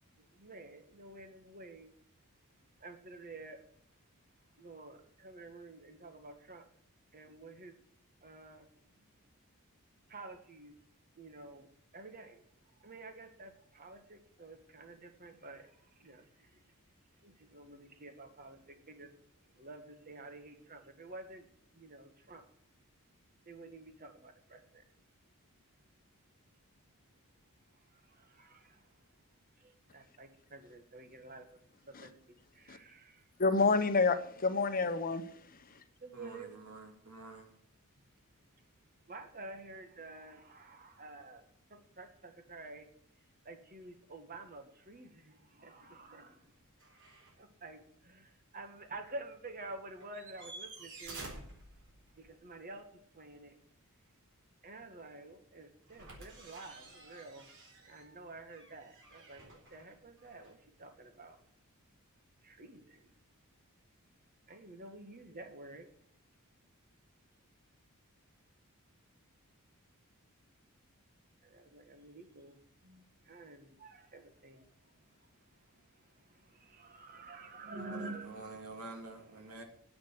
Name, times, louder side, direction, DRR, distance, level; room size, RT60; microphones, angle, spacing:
voice 1, 0.2-1.9 2.8-3.6 4.6-6.6 7.1-7.7 8.2-8.7 9.0-9.1 10.1-10.7 11.2-11.7 11.9-12.4 12.8-16.6 17.2-19.1 19.5-21.5 21.7-22.4 23.4-24.8 27.9-29.0 29.6-31.6 31.9-32.1 32.5-33.3 36.0-36.5 39.1-42.9 43.4-46.5 47.4-51.3 52.2-52.8 53.1-53.6 54.6-57.5 57.8-61.4 62.4-63.1 64.5-65.9 71.4-74.9 75.2-79.6, right 2 dB, 40° right, 1.7 m, -50 dB
voice 2, 33.4-35.2, left 4 dB, 40° left, 1.0 m, -28 dB
voice 3, 36.1-37.5 77.7-79.6, right 3 dB, 90° right, 2.9 m, -48 dB
sound 1, 46.8-47.4 47.8-47.9 50.0-52.3 55.9-60.7 62.8-62.9, right 2 dB, 60° right, 4.1 m, -51 dB
10.0 x 8.2 x 8.2 m
head